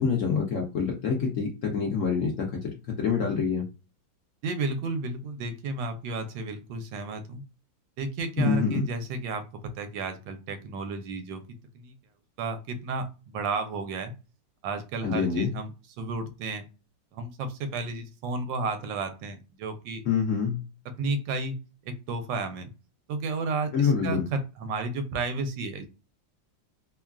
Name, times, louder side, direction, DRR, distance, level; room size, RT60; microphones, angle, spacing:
voice 1, 0.0-3.7 8.4-8.9 15.0-15.5 20.0-20.6 23.7-24.2, left 6 dB, 75° left, 0 dB, 0.7 m, -26 dB
voice 2, 4.4-7.4 8.0-11.4 11.7-11.9 12.4-14.1 14.6-15.7 16.0-16.7 17.1-20.0 21.0-21.6 21.9-22.7 23.1-25.9, right 3 dB, 80° right, 8 dB, 1.3 m, -32 dB
3.1 x 2.3 x 2.2 m, 0.30 s
omnidirectional pair, 2.0 m